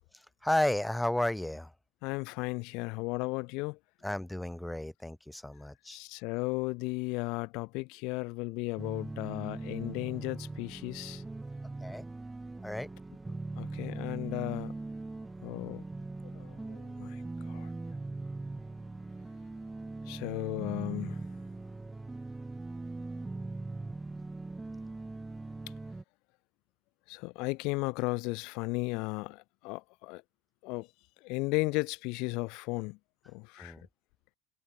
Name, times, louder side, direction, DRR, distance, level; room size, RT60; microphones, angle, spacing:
voice 1, 0.1-1.7 4.0-6.0 11.8-12.0 12.6-12.9 33.6-33.8, left 1 dB, 5° left, 4.3 m, -33 dB
voice 2, 2.0-3.8 5.9-11.2 13.6-14.7 15.4-15.8 16.3-17.7 20.1-21.2 27.1-30.2 30.6-30.9 31.2-33.0 33.3-33.8, left 27 dB, 75° left, 2.4 m, -35 dB
sound 1, 8.8-26.0, right 2 dB, 10° right, 3.8 m, -40 dB
cardioid pair, 125°, 0 cm